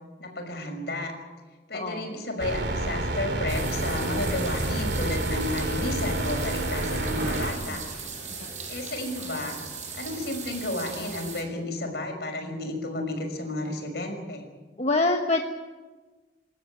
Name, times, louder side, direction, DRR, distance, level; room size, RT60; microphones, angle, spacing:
voice 1, 0.2-1.1 1.7-7.8 8.7-9.6 9.9-14.5, left 1 dB, 65° left, 3 dB, 5.8 m, -32 dB
voice 2, 1.7-2.1 14.8-15.4, left 2 dB, 40° left, 2 dB, 1.4 m, -24 dB
sound 1, 2.4-7.5, right 1 dB, 75° right, 2.8 m, -29 dB
sound 2, 3.5-11.4, right 4 dB, 45° right, 6.7 m, -38 dB
27.0 x 13.5 x 9.2 m, 1.3 s
head